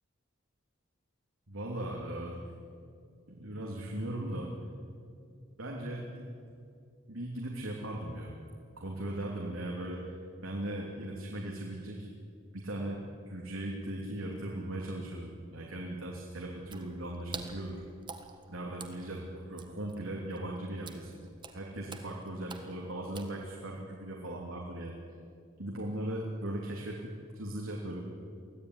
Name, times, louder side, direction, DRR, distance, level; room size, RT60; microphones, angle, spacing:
voice 1, 1.5-2.5 3.3-4.5 5.6-6.3 7.1-8.3 8.8-12.1 12.5-13.0 13.3-17.8 18.5-21.1 21.5-25.0 25.6-28.0, right 1 dB, 90° right, -1 dB, 3.0 m, -38 dB
Water / Splash splatter, 16.6-23.8, right 4 dB, 25° right, 1.5 m, -49 dB
24.0 x 16.5 x 9.8 m, 2.4 s
head